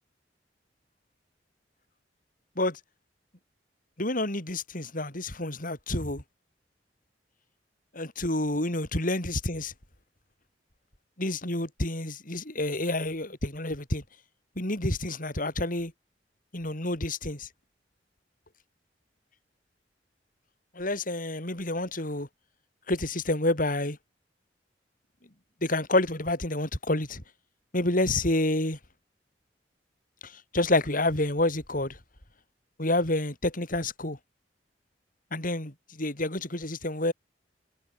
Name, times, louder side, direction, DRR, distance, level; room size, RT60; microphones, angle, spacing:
voice 1, 4.0-6.2 7.9-9.7 11.2-14.0 14.6-15.9 16.5-17.5 20.8-22.3 22.9-24.0 25.6-27.2 27.7-28.8 30.2-32.0 32.8-34.2 35.3-37.1, left 2 dB, 50° left, 5.3 m, -28 dB
head